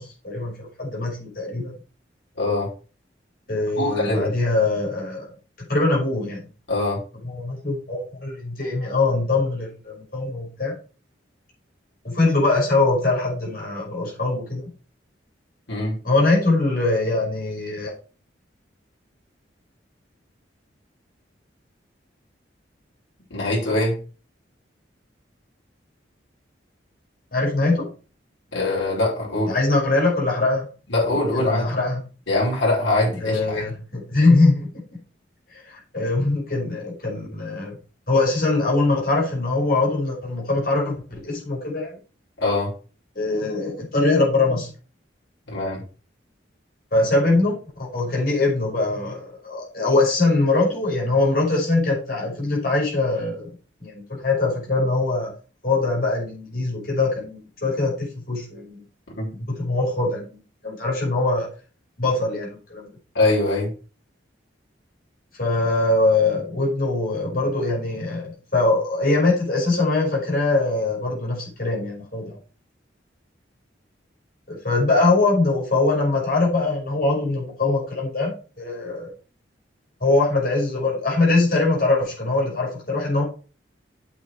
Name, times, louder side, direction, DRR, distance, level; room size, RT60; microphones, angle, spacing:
voice 1, 0.0-1.7 3.5-5.3 5.7-6.4 7.2-10.8 12.0-14.7 16.0-17.9 27.3-27.9 29.5-30.7 31.3-32.0 33.2-34.8 35.5-37.8 38.1-42.0 43.2-44.7 46.9-53.5 53.8-55.3 55.6-58.8 59.5-61.5 62.0-62.9 65.4-72.4 74.5-79.1 80.0-83.2, left 2 dB, 50° left, -3 dB, 5.7 m, -22 dB
voice 2, 2.4-2.7 3.8-4.3 6.7-7.0 15.7-16.0 23.3-24.0 28.5-29.5 30.9-31.7 32.3-33.6 42.4-42.7 45.5-45.8 59.2-59.3 63.2-63.7, left 2 dB, 90° left, -4 dB, 5.1 m, -22 dB
8.7 x 7.0 x 4.7 m, 0.37 s
head